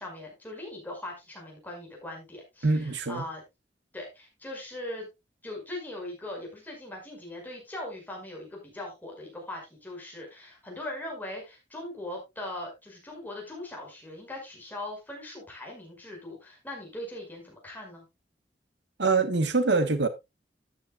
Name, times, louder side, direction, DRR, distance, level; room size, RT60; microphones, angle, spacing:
voice 1, 0.0-3.4 3.9-5.1 5.4-18.1, left 1 dB, 10° left, 5.5 m, -40 dB
voice 2, 2.6-3.2 19.0-20.1, right 3 dB, 85° right, 1.3 m, -24 dB
13.5 x 9.6 x 2.3 m
head